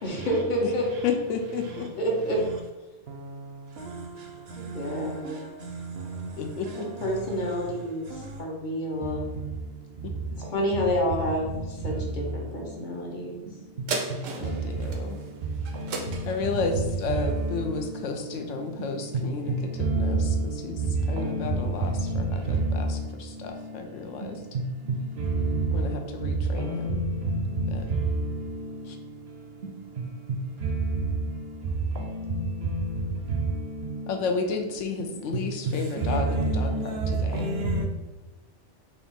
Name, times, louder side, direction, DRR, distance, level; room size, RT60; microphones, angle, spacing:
voice 1, 0.0-0.9 2.0-2.4 4.6-5.4 7.0-9.3 10.3-13.4, equal, 45° left, 0.8 m, -29 dB
voice 2, 1.0-1.9 6.4-6.9 14.3-15.2 16.3-24.4 25.7-27.0 27.7-27.8 28.9-29.0 34.1-37.5, left 4 dB, 80° left, 0.9 m, -32 dB
sound 1, 13.9-18.6 19.1-19.2, right 3 dB, 85° right, 1.0 m, -37 dB
voice 3, 19.8-20.3 21.2-21.3 24.2-24.3 25.5-25.7 35.0-35.1 36.0-37.8, right 3 dB, 65° right, 0.7 m, -26 dB
3.9 x 2.4 x 3.5 m
omnidirectional pair, 1.3 m